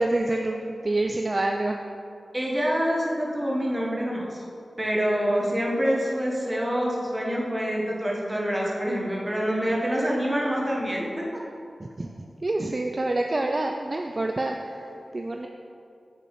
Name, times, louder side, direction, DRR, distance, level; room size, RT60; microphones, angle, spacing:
voice 1, 0.0-1.8 11.8-12.1 12.4-15.5, right 2 dB, 45° right, 3 dB, 0.3 m, -27 dB
voice 2, 2.3-4.4 4.8-11.3, equal, 20° right, -3 dB, 1.3 m, -26 dB
5.7 x 3.9 x 4.8 m, 2.5 s
cardioid pair, 45°, 0 cm